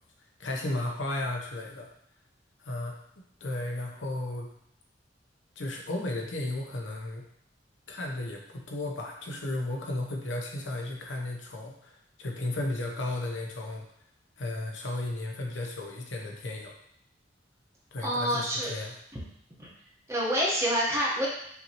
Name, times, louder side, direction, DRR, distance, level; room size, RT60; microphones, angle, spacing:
voice 1, 0.4-1.9 2.6-2.9 3.4-4.5 5.6-7.2 7.9-13.8 14.4-16.7 17.9-18.9, left 2 dB, 80° left, 0 dB, 0.8 m, -34 dB
voice 2, 18.0-18.7 19.6-19.7 20.1-21.3, equal, 15° right, -4 dB, 1.0 m, -27 dB
5.6 x 2.7 x 2.9 m, 0.70 s
head